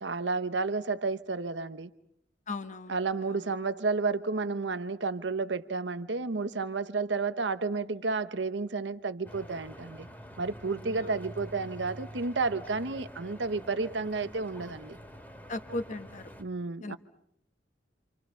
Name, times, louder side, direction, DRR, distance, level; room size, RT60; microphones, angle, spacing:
voice 1, 0.0-1.9 2.9-10.1 10.4-15.0 16.4-17.0, right 4 dB, 80° right, 1.0 m, -31 dB
voice 2, 2.5-3.5 10.9-11.1 15.5-16.3 16.8-17.0, left 2 dB, 45° left, 1.3 m, -38 dB
Stream / Boat Water vehicle, 9.2-16.4, equal, 10° left, 2.3 m, -47 dB
28.5 x 26.5 x 5.7 m
head